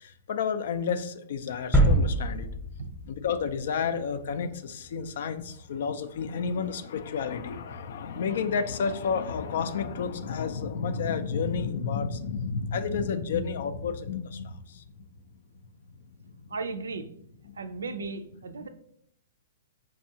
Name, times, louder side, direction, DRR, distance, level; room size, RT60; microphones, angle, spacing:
voice 1, 0.0-2.5 3.1-14.8, left 6 dB, 65° left, 11 dB, 0.3 m, -31 dB
sound 1, 1.7-3.7 4.1-4.2, right 1 dB, ahead, 0.8 m, -25 dB
voice 2, 16.5-17.1 17.6-18.7, right 4 dB, 90° right, 9 dB, 0.4 m, -35 dB
4.4 x 2.3 x 2.7 m, 0.67 s
hypercardioid pair, 135°, 0 cm